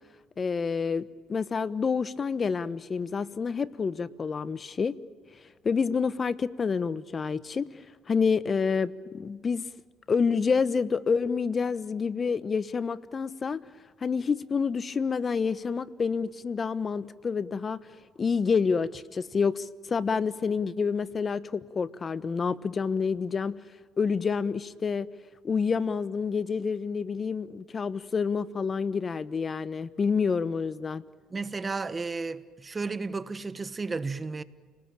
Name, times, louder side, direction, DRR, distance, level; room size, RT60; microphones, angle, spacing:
voice 1, 0.4-4.9 5.6-9.7 10.1-13.6 14.0-17.8 18.2-23.6 24.0-25.1 25.4-31.0, left 5 dB, 35° left, 1.1 m, -28 dB
voice 2, 31.3-34.4, right 4 dB, 25° right, 1.3 m, -33 dB
30.0 x 19.5 x 9.0 m
supercardioid pair, 85°, 0 cm